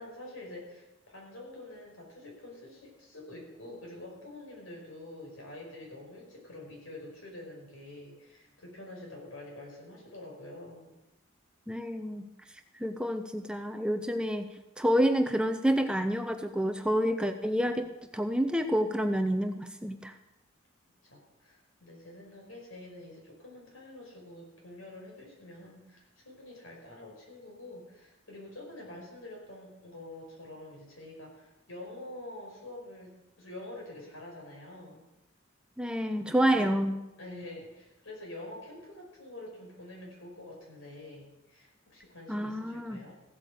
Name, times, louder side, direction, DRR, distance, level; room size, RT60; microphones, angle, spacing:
voice 1, 0.0-10.9 17.3-17.7 21.0-35.0 36.5-36.7 37.2-43.1, left 1 dB, 85° left, -1 dB, 5.3 m, -47 dB
voice 2, 11.7-12.3 12.8-17.9 18.1-20.1 35.8-37.0 42.3-43.0, equal, 5° right, 7 dB, 0.6 m, -28 dB
15.5 x 8.6 x 6.7 m, 0.96 s
head